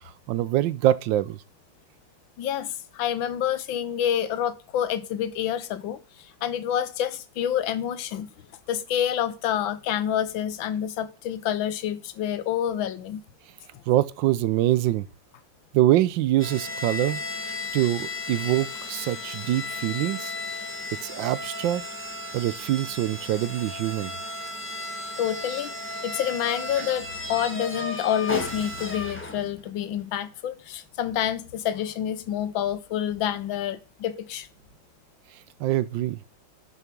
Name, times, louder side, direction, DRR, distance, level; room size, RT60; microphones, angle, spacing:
voice 1, 0.0-1.4 13.9-15.1 15.7-17.2 17.7-20.3 21.0-21.8 22.3-24.1 35.6-36.2, right 14 dB, 80° right, 1.3 m, -24 dB
voice 2, 2.4-8.3 8.7-13.2 13.7-13.8 25.2-25.7 26.0-34.5, left 10 dB, 85° left, 1.6 m, -28 dB
sound 1, 16.4-29.6, left 2 dB, 5° left, 1.4 m, -35 dB
7.3 x 6.7 x 6.0 m
omnidirectional pair, 2.1 m